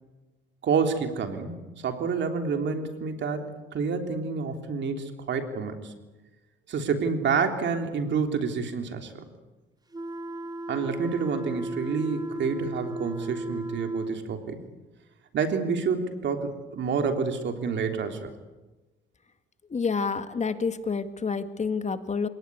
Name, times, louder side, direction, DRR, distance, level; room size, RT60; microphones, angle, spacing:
voice 1, 0.6-5.9 6.7-9.2 10.7-14.6 15.3-18.3, right 5 dB, 65° right, 5 dB, 3.5 m, -28 dB
sound 1, 9.9-14.2, right 1 dB, 20° right, 1.6 m, -35 dB
voice 2, 19.7-22.3, left 5 dB, 35° left, 9 dB, 1.9 m, -28 dB
27.5 x 18.5 x 9.8 m, 1.1 s
cardioid pair, 90°, 20 cm